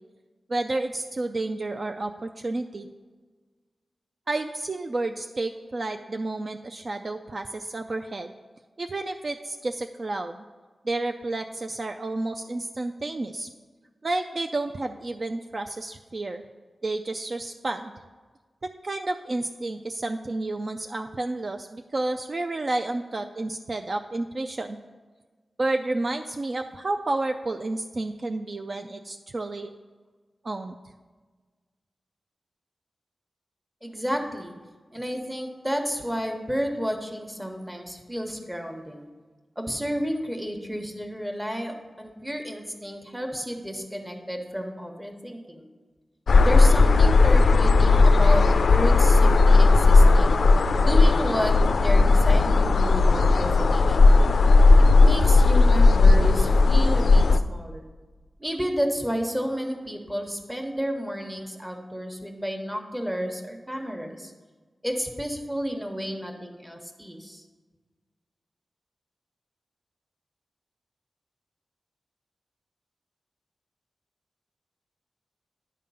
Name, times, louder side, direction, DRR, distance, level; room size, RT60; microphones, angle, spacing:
voice 1, 0.5-2.9 4.3-8.3 8.8-10.4 10.8-13.5 14.0-16.4 16.8-17.9 18.8-24.8 25.6-29.7 30.4-30.8, right 2 dB, 50° right, 6 dB, 0.3 m, -30 dB
voice 2, 33.8-34.5 34.9-39.1 39.6-45.7 46.4-50.4 50.8-51.5 51.8-54.1 55.0-57.9 58.4-64.3 64.8-67.4, equal, 10° right, 3 dB, 1.1 m, -31 dB
sound 1, 46.3-57.4, left 3 dB, 75° left, 0.3 m, -16 dB
10.0 x 3.7 x 5.5 m, 1.4 s
cardioid pair, 50°, 0 cm